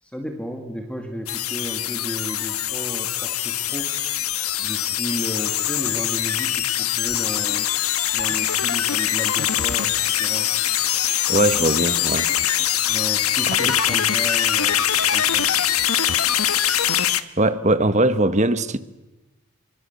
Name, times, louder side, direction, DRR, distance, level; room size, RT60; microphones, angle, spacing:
voice 1, 0.0-3.9 4.6-7.7 8.1-10.5 12.9-15.6, equal, 5° left, 2.2 m, -33 dB
sound 1, 1.3-17.2, left 11 dB, 85° left, 1.4 m, -22 dB
voice 2, 11.3-12.3 13.7-13.8 17.4-18.8, right 1 dB, 30° right, 1.2 m, -20 dB
26.0 x 24.5 x 8.2 m
head